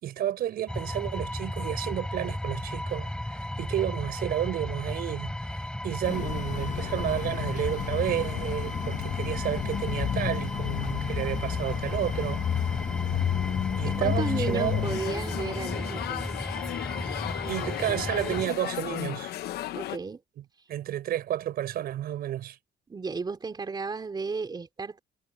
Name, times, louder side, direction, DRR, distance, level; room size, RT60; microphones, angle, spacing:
voice 1, 0.0-12.7 13.8-14.9 17.1-19.3 20.7-22.6, right 12 dB, 65° right, 5.0 m, -31 dB
sound 1, 0.7-18.5, left 1 dB, 5° left, 4.1 m, -35 dB
sound 2, 6.0-15.0, left 9 dB, 45° left, 1.5 m, -31 dB
voice 2, 13.8-16.3 19.7-20.2 22.9-25.0, right 4 dB, 25° right, 3.4 m, -33 dB
sound 3, 14.8-20.0, left 13 dB, 70° left, 1.1 m, -35 dB
cardioid pair, 110°, 17 cm